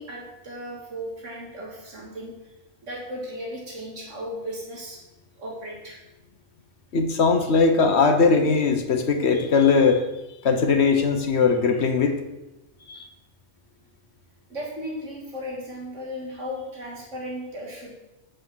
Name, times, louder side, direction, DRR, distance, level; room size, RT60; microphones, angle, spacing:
voice 1, 0.0-2.5 2.8-5.0 5.4-6.0 14.5-17.9, equal, 90° right, -2 dB, 2.2 m, -36 dB
voice 2, 6.9-10.1 10.4-12.2 12.9-13.1, left 4 dB, 65° left, 6 dB, 1.3 m, -20 dB
8.2 x 6.4 x 6.2 m, 0.97 s
omnidirectional pair, 1.2 m